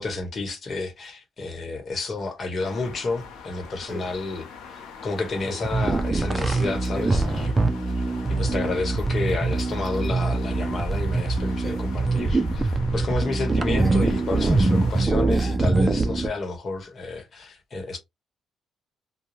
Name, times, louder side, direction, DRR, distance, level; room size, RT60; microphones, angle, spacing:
voice 1, 0.0-7.6 7.9-8.0 8.3-18.0, left 3 dB, 45° left, 1.1 m, -30 dB
sound 1, 1.0-1.1 3.9-4.3 5.4-5.8 6.8-7.3 9.0-10.2 10.5-10.6 10.8-12.2 12.5-12.8 13.3-13.4 13.8-14.1 14.4-14.5 15.3-15.8, left 1 dB, 15° left, 1.5 m, -40 dB
sound 2, 2.6-15.1, left 6 dB, 90° left, 0.7 m, -42 dB
sound 3, 5.6-16.3, right 3 dB, 25° right, 0.4 m, -23 dB
2.5 x 2.2 x 3.0 m
cardioid pair, 90°, 0 cm